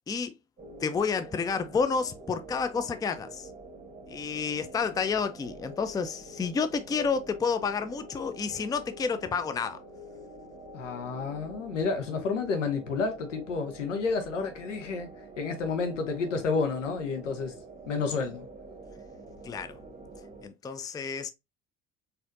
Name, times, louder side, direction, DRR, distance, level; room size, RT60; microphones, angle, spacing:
sound 1, 0.6-20.5, right 2 dB, 20° right, 1.3 m, -47 dB
voice 1, 0.8-3.5 4.1-9.8 19.4-19.8 20.4-21.3, left 5 dB, 10° left, 0.4 m, -30 dB
voice 2, 10.7-15.1 15.4-17.5 17.9-18.5, left 4 dB, 85° left, 0.9 m, -30 dB
4.1 x 2.7 x 2.5 m
hypercardioid pair, 60°, 36 cm